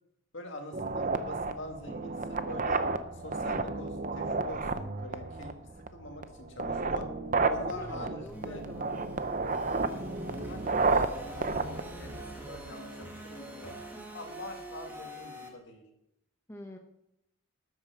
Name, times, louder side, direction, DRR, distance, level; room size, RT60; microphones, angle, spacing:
voice 1, 0.3-2.1 2.5-2.8 3.1-5.6 5.9-7.1 7.5-8.6 9.9-11.0 11.4-13.8 14.1-15.8, left 1 dB, 55° left, 3 dB, 2.1 m, -44 dB
sound 1, 0.7-12.7, right 3 dB, 35° right, 0.7 m, -32 dB
voice 2, 7.6-9.1 16.5-16.8, equal, 10° left, 2 dB, 0.8 m, -45 dB
sound 2, 8.3-15.5, right 1 dB, 10° right, 1.9 m, -45 dB
13.0 x 8.6 x 5.9 m, 0.86 s
head